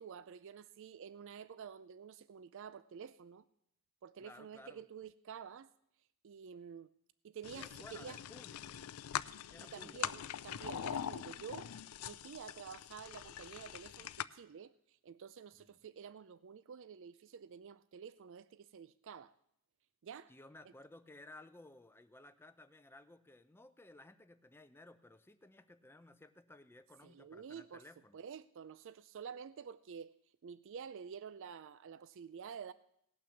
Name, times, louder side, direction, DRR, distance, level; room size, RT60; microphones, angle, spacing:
voice 1, 0.0-3.4 4.0-5.7 6.2-6.9 7.2-8.2 9.6-11.7 12.0-19.3 20.0-20.3 27.0-27.8 28.1-30.1 30.4-32.7, right 7 dB, 60° right, 0.4 m, -50 dB
voice 2, 4.2-4.8 7.6-8.8 9.5-10.2 15.5-15.8 20.3-28.2, left 2 dB, 10° left, 0.5 m, -57 dB
sound 1, 7.4-14.2, left 9 dB, 85° left, 0.4 m, -43 dB
17.5 x 6.0 x 7.1 m
head